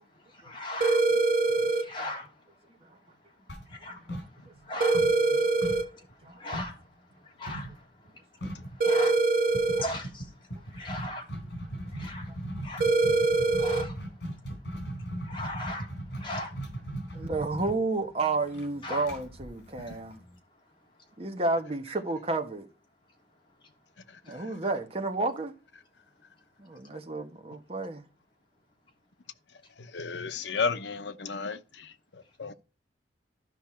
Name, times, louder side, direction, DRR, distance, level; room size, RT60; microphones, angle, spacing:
voice 1, 0.4-1.0 1.8-2.3 3.8-4.0 4.7-5.0 6.4-6.7 7.4-7.7 8.8-9.1 9.8-10.2 10.7-11.2 11.9-12.2 12.6-12.8 13.6-13.9 15.3-15.9 16.2-16.5 18.8-19.0, left 1 dB, 30° left, 3.2 m, -36 dB
sound 1, 0.8-1.8 4.8-5.8 8.8-9.8 12.8-13.8, right 3 dB, 50° right, 1.5 m, -24 dB
sound 2, 3.5-4.7 4.9-6.8 7.5-7.8 8.1-8.2 8.4-8.8 9.5-20.3, right 1 dB, 70° left, 4.2 m, -38 dB
voice 2, 17.1-20.2 21.2-22.6 24.2-25.5 26.6-28.1, right 3 dB, 35° right, 1.3 m, -31 dB
voice 3, 29.9-31.9 32.1-32.5, left 5 dB, 90° left, 0.8 m, -33 dB
12.5 x 5.7 x 4.4 m
head